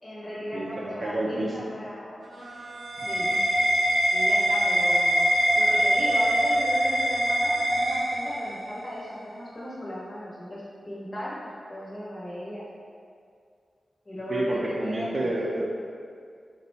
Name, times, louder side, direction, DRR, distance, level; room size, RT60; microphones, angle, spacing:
voice 1, 0.0-2.2 3.1-3.3 4.1-5.3 5.6-12.6 14.0-15.3, equal, 30° left, -8 dB, 1.2 m, -37 dB
voice 2, 0.5-1.5 3.0-3.3 14.3-15.6, right 1 dB, 40° right, -3 dB, 0.5 m, -29 dB
sound 1, 2.2-8.7, equal, 85° right, 0.7 m, -23 dB
4.1 x 2.3 x 4.2 m, 2.3 s
wide cardioid pair, 95°, 0 cm